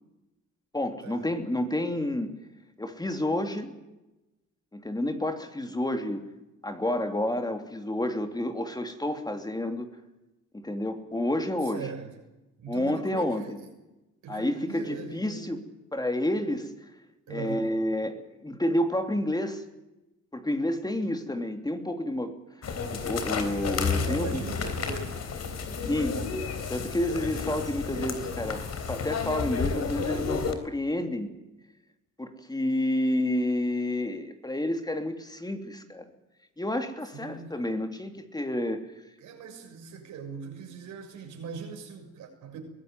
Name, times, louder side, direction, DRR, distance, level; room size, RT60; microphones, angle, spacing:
voice 1, 0.7-2.4 2.8-3.7 4.7-6.2 6.6-9.9 10.5-11.9 12.7-13.6 14.3-15.6 15.9-16.9 17.3-19.6 20.3-22.3 22.9-24.4 25.8-26.2 26.7-28.6 28.9-31.3 32.2-36.1 36.6-38.9, left 1 dB, 15° left, 6 dB, 3.0 m, -29 dB
voice 2, 11.7-12.1 12.6-13.7 14.2-15.5 17.3-17.7 23.9-25.2 37.1-37.6 39.2-42.6, right 6 dB, 80° right, 2 dB, 6.9 m, -40 dB
sound 1, 22.6-30.5, left 5 dB, 55° left, 3.6 m, -31 dB
23.0 x 16.5 x 9.4 m, 1.0 s
cardioid pair, 90°, 30 cm